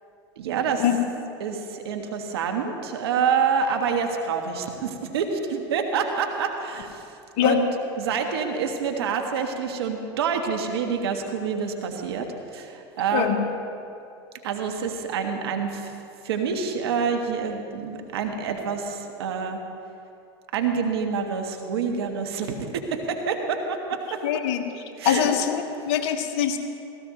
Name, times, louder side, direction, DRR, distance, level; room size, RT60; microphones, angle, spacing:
voice 1, 0.4-0.9 1.4-7.0 7.4-7.7 8.0-13.4 14.4-15.9 16.2-19.6 20.5-22.5 22.9-24.4 25.0-25.4, right 6 dB, 75° right, 4 dB, 1.5 m, -27 dB
voice 2, 24.2-24.6 25.0-26.6, left 10 dB, 55° left, 5 dB, 1.4 m, -23 dB
17.5 x 15.5 x 3.2 m, 2.6 s
hypercardioid pair, 85°, 13 cm